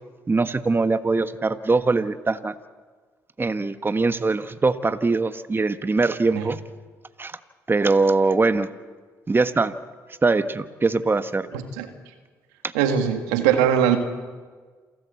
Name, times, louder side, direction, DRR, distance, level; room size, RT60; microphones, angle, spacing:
voice 1, 0.3-2.5 3.4-6.6 7.2-7.4 7.7-8.7 9.3-9.7 10.2-11.5 12.6-12.7, right 3 dB, 25° right, 11 dB, 1.2 m, -22 dB
voice 2, 11.5-11.9 12.7-14.0, right 9 dB, 90° right, 7 dB, 1.9 m, -21 dB
27.5 x 13.0 x 8.3 m, 1.5 s
hypercardioid pair, 55°, 8 cm